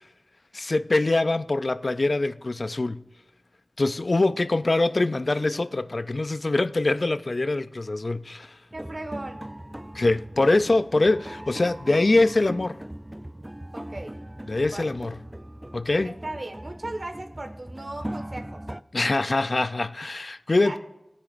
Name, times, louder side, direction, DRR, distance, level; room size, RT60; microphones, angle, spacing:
voice 1, 0.5-3.0 3.8-8.6 9.9-12.8 14.5-15.1 15.7-16.1 18.9-20.8, left 2 dB, 65° left, 0.4 m, -23 dB
sound 1, 8.7-18.8, right 1 dB, 20° right, 0.3 m, -39 dB
voice 2, 8.7-9.4 13.7-14.1 14.7-14.9 16.0-18.6 20.6-20.8, right 2 dB, 60° right, 1.4 m, -37 dB
16.5 x 9.7 x 2.5 m
wide cardioid pair, 40°, 0 cm